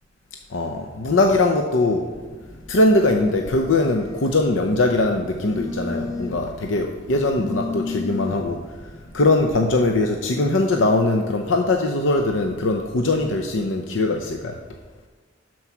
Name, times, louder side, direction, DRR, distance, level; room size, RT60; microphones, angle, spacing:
voice 1, 0.5-2.1 2.7-8.6 9.1-14.6, left 2 dB, 80° left, 3 dB, 0.7 m, -21 dB
Telephone, 2.1-10.2, left 3 dB, 20° left, 0.8 m, -35 dB
11.5 x 4.7 x 5.9 m, 1.4 s
head